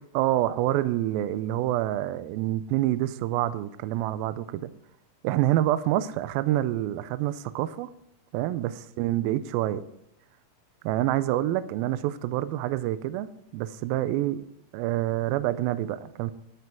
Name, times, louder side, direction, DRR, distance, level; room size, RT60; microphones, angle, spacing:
voice 1, 0.1-4.7 5.2-7.9 8.3-9.8 10.8-14.5 14.7-16.3, right 14 dB, 85° right, 14 dB, 2.3 m, -27 dB
11.0 x 9.2 x 4.6 m, 0.77 s
omnidirectional pair, 4.3 m